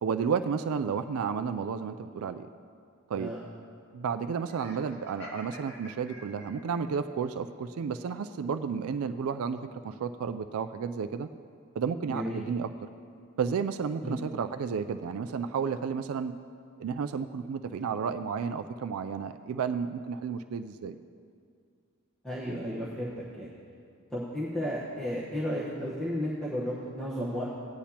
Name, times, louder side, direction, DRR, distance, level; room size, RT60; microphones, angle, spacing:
voice 1, 0.0-2.5 3.1-3.3 3.9-11.3 11.8-12.7 13.4-16.3 16.8-21.0, right 6 dB, 70° right, 10 dB, 0.3 m, -32 dB
Laughter, 4.5-6.8, left 1 dB, 55° left, 2.1 m, -47 dB
voice 2, 12.1-12.4 14.0-14.4 22.2-23.5 24.1-27.5, equal, 5° left, -8 dB, 1.1 m, -33 dB
16.5 x 10.0 x 2.9 m, 2.3 s
head